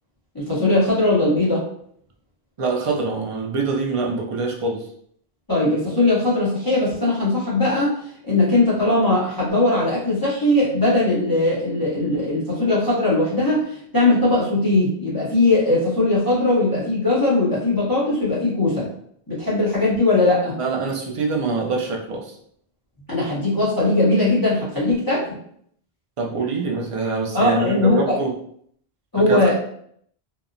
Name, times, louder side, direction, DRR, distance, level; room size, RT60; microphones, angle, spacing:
voice 1, 0.3-1.6 5.5-7.9 8.3-18.9 19.3-20.6 23.1-25.4 27.3-28.2 29.1-29.5, left 2 dB, 20° left, -9 dB, 0.8 m, -19 dB
voice 2, 2.6-4.9 20.6-22.3 26.2-28.3 29.3-29.5, right 3 dB, 55° right, 0 dB, 0.4 m, -24 dB
2.8 x 2.0 x 2.5 m, 0.65 s
omnidirectional pair, 1.1 m